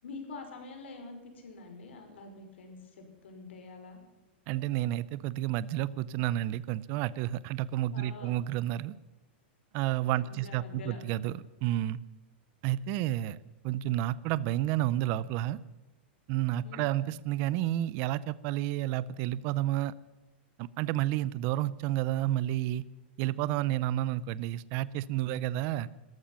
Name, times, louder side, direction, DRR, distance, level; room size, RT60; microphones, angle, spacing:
voice 1, 0.0-4.0 7.9-8.4 10.2-11.0 16.6-17.0, left 3 dB, 85° left, 4 dB, 5.4 m, -46 dB
voice 2, 4.5-9.0 9.7-12.0 12.6-13.4 13.6-15.6 16.3-19.9 20.6-22.8 23.2-25.9, right 13 dB, 35° right, 19 dB, 0.5 m, -30 dB
14.0 x 12.5 x 7.5 m, 1.1 s
supercardioid pair, 165°, 6 cm